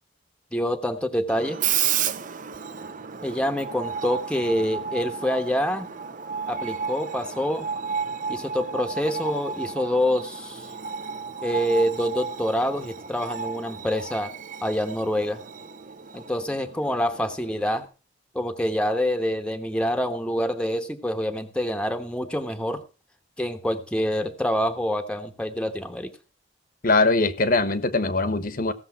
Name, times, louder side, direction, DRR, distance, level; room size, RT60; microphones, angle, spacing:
voice 1, 0.5-1.6 3.2-5.9 6.5-7.7 8.3-10.7 11.4-14.3 14.6-15.4 16.1-17.9 18.3-22.8 23.4-26.1, equal, 5° left, 1.1 m, -26 dB
Screech, 1.3-17.9, right 7 dB, 45° right, 0.8 m, -32 dB
voice 2, 26.8-28.7, left 3 dB, 45° left, 1.2 m, -21 dB
16.0 x 7.1 x 5.7 m
head